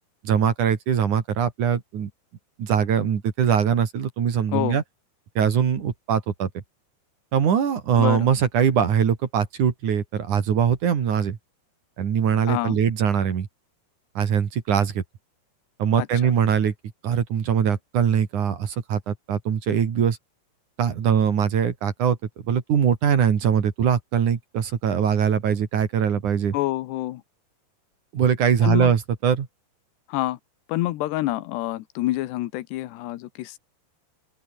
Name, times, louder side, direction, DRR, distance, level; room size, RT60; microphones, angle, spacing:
voice 1, 0.2-2.1 2.6-4.8 5.4-6.6 7.3-11.4 12.0-13.5 14.2-15.0 15.8-16.7 17.0-20.2 20.8-22.2 22.5-26.6 28.1-29.5, right 8 dB, 50° right, 3.5 m, -22 dB
voice 2, 8.0-8.3 12.5-12.8 16.0-16.3 26.5-27.2 28.6-28.9 30.1-30.4 30.7-33.6, left 16 dB, 85° left, 3.2 m, -27 dB
open air
omnidirectional pair, 4.8 m